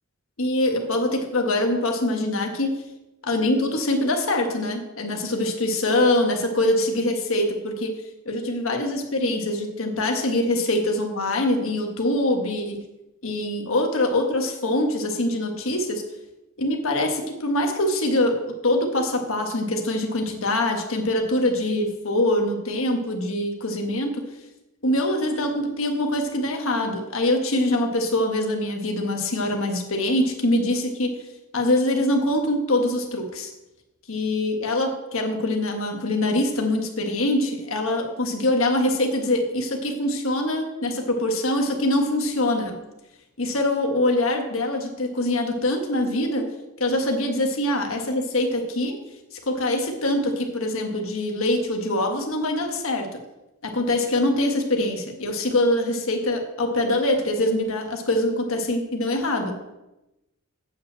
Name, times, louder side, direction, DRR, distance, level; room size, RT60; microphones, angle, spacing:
voice 1, 0.4-2.8 3.2-7.9 8.2-12.8 13.2-16.0 16.6-24.2 24.8-31.1 31.5-33.5 34.1-42.8 43.4-46.5 46.8-48.9 49.5-53.1 53.6-59.7, left 1 dB, 70° left, 3 dB, 1.5 m, -24 dB
8.4 x 5.3 x 7.5 m, 0.96 s
head